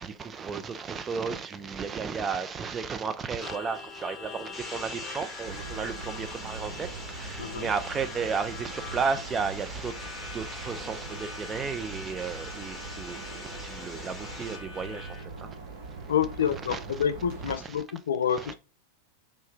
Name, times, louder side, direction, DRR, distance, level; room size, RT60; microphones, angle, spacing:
voice 1, 0.0-15.5 16.7-16.8 17.6-17.8 18.4-18.5, right 5 dB, 20° right, 0.4 m, -34 dB
Harmonica, 3.4-15.2, left 5 dB, 25° left, 0.9 m, -45 dB
sound 1, 4.5-14.6, left 1 dB, ahead, 1.0 m, -43 dB
sound 2, 5.4-17.6, right 3 dB, 50° right, 0.9 m, -42 dB
voice 2, 7.4-7.7 16.1-18.5, left 8 dB, 65° left, 0.3 m, -28 dB
3.4 x 2.7 x 3.3 m
figure-of-eight pair, 90°, 0 cm